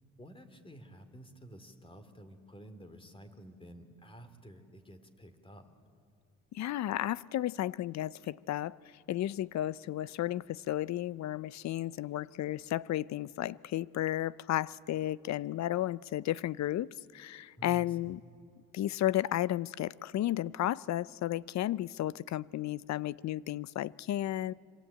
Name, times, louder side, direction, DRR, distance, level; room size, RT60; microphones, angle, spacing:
voice 1, 0.2-5.7 17.6-18.2, right 1 dB, 15° left, 2.9 m, -51 dB
voice 2, 6.5-8.8 9.1-18.2 18.7-24.5, left 13 dB, 65° left, 0.6 m, -33 dB
26.5 x 24.0 x 8.8 m
cardioid pair, 90°, 30 cm